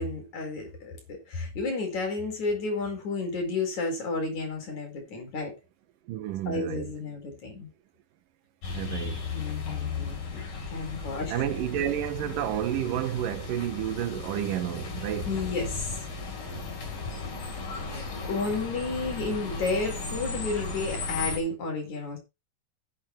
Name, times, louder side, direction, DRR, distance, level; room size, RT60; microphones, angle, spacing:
voice 1, 0.0-5.5 6.5-7.7 9.3-10.4 10.7-11.4 15.3-16.1 16.7-16.8 17.4-17.5 18.2-22.2, left 3 dB, 60° left, 5.9 m, -32 dB
voice 2, 6.1-6.9 8.7-9.2 11.3-15.3, right 11 dB, 90° right, 2.7 m, -30 dB
sound 1, 8.6-21.4, left 4 dB, 85° left, 5.6 m, -36 dB
10.5 x 9.5 x 4.6 m
omnidirectional pair, 3.8 m